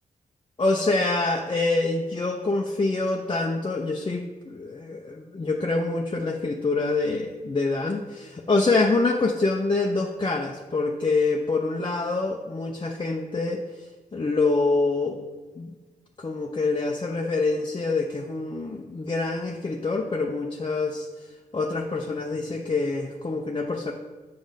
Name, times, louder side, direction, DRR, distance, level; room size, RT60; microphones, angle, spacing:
voice 1, 0.6-13.6 14.1-15.2 15.6-15.7 16.2-21.1 21.5-23.9, left 3 dB, 30° left, 0 dB, 0.8 m, -26 dB
7.3 x 5.2 x 5.2 m, 1.2 s
cardioid pair, 50°, 16 cm